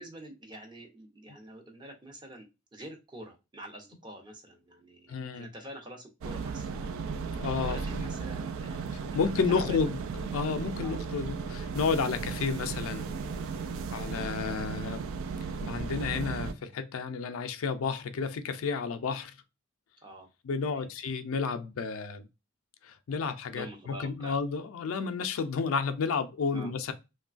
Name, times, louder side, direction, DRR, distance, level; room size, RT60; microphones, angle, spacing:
voice 1, 0.0-2.5 2.7-6.9 7.6-9.2 9.5-9.9 10.8-11.0 20.0-20.3 20.6-20.9 23.5-24.4 26.5-26.7, equal, 20° right, 0.6 m, -46 dB
voice 2, 5.1-5.5 7.3-8.1 9.1-10.0 10.3-13.1 13.9-15.0 15.6-19.3 20.4-22.3 22.8-26.9, left 5 dB, 80° left, 0.4 m, -31 dB
sound 1, 6.2-16.5, right 5 dB, 75° right, 0.3 m, -35 dB
3.0 x 2.2 x 2.4 m
head